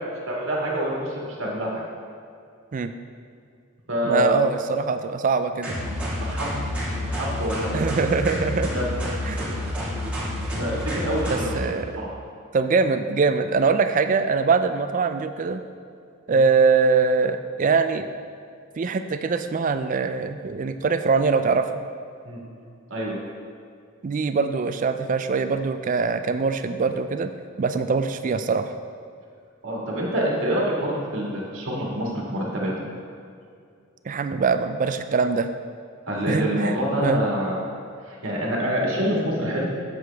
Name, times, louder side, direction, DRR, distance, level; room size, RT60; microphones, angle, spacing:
voice 1, 0.3-1.8 3.9-4.4 6.2-6.5 7.1-7.7 8.7-8.8 10.6-11.7 11.9-12.2 16.3-16.4 22.2-22.6 22.9-23.2 29.6-32.7 36.1-37.6 38.1-39.7, equal, 60° right, -3 dB, 1.9 m, -26 dB
voice 2, 4.0-5.8 7.7-8.7 9.3-9.6 11.3-12.0 12.5-15.6 16.3-18.1 18.8-21.8 24.0-27.3 27.6-28.7 34.1-35.5 36.3-37.2, right 4 dB, 40° right, 10 dB, 0.3 m, -23 dB
sound 1, 5.6-11.6, left 1 dB, 5° right, 1.8 m, -29 dB
7.8 x 7.7 x 3.4 m, 2.4 s
head